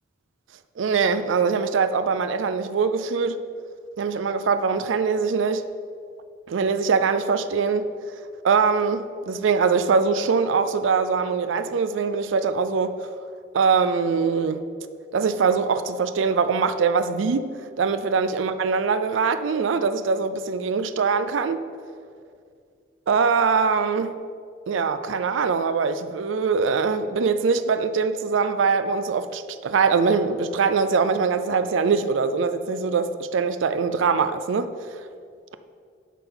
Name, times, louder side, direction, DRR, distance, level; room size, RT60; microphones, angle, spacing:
voice 1, 0.8-3.4 4.0-5.6 6.5-7.9 8.4-13.0 13.5-14.6 15.1-17.4 17.8-21.6 23.1-24.1 24.7-34.7, right 5 dB, 85° right, 0.4 m, -22 dB
11.0 x 3.9 x 7.2 m
head